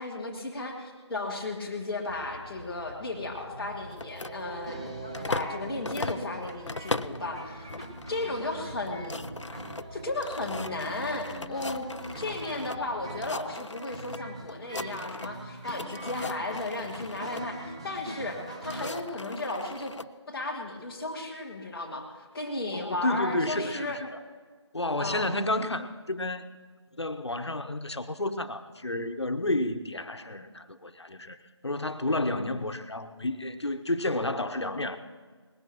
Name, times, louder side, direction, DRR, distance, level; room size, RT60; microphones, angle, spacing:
voice 1, 0.0-4.8 5.3-7.7 8.1-9.3 9.9-11.9 12.1-19.9 20.3-24.0 25.0-25.3, left 2 dB, 5° left, -9 dB, 1.1 m, -34 dB
Train, 2.1-13.3, right 2 dB, 65° right, 4.8 m, -46 dB
sound 1, 3.9-5.6 5.8-7.2 7.7-8.1 8.5-8.6 8.8-12.8 13.1-14.2 14.5-15.4 15.7-17.4 18.2-20.1, left 3 dB, 90° left, 0.5 m, -38 dB
sound 2, 4.7-18.9, right 1 dB, 15° right, 0.6 m, -43 dB
voice 2, 22.7-24.2 24.7-26.4 27.0-31.4 31.6-35.0, left 2 dB, 65° left, 8 dB, 1.1 m, -31 dB
20.0 x 16.5 x 3.0 m, 1.5 s
figure-of-eight pair, 165°, 15 cm